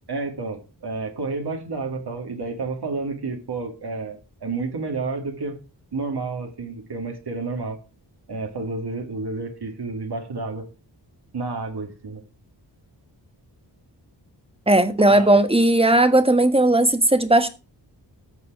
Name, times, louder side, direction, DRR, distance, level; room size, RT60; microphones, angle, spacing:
voice 1, 0.1-5.6 5.9-7.8 8.3-10.6 11.3-12.2 15.1-15.4, right 3 dB, 65° right, 2.1 m, -30 dB
voice 2, 14.7-17.5, right 1 dB, 15° right, 1.3 m, -17 dB
14.0 x 4.7 x 5.9 m
wide cardioid pair, 120°, 43 cm